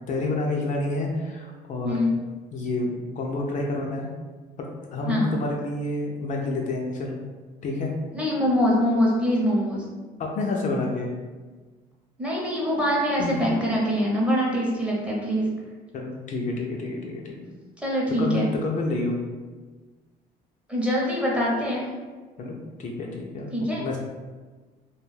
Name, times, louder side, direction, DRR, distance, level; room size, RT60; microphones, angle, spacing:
voice 1, 0.1-2.0 2.5-4.1 4.9-7.2 7.6-7.9 10.2-11.1 13.2-13.4 15.9-17.4 18.2-19.2 22.4-23.5 23.8-24.0, left 2 dB, 50° left, 0 dB, 0.4 m, -28 dB
voice 2, 8.1-9.8 12.2-15.5 17.8-18.5 20.7-21.9 23.5-24.0, equal, 5° right, -4 dB, 0.7 m, -24 dB
2.3 x 2.2 x 3.1 m, 1.4 s
cardioid pair, 110°, 17 cm